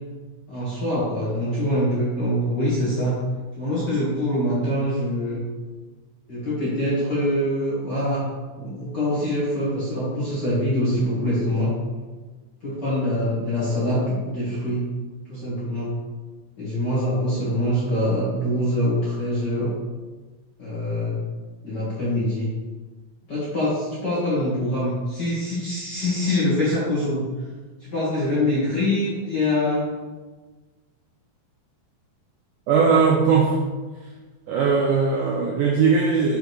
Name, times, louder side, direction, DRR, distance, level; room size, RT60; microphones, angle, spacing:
voice 1, 0.5-3.2 3.6-5.4 6.3-8.2 8.6-11.7 12.6-14.8 15.3-15.9 16.6-19.7 20.6-21.2 21.6-22.5 23.3-27.2 27.8-29.9, left 1 dB, 45° left, -10 dB, 1.5 m, -24 dB
voice 2, 32.7-33.6 34.0-34.1 34.5-36.4, right 5 dB, 85° right, -2 dB, 1.8 m, -19 dB
6.4 x 4.9 x 3.2 m, 1.3 s
omnidirectional pair, 4.2 m